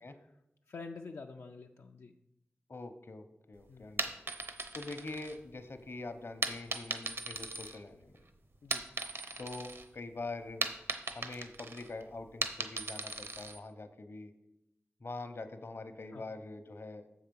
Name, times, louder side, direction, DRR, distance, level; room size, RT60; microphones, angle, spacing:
voice 1, 0.7-2.1 3.7-3.9 8.6-8.9 16.1-16.3, left 4 dB, 80° left, 2 dB, 0.4 m, -47 dB
voice 2, 2.7-4.1 4.7-8.2 9.4-10.7 11.1-14.3 15.0-17.1, left 3 dB, 60° left, 9 dB, 0.8 m, -44 dB
sound 1, 3.8-5.8 6.4-8.2 8.5-9.9 10.2-13.6, right 3 dB, 60° right, 0.8 m, -38 dB
7.2 x 5.6 x 5.3 m, 0.87 s
cardioid pair, 45°, 5 cm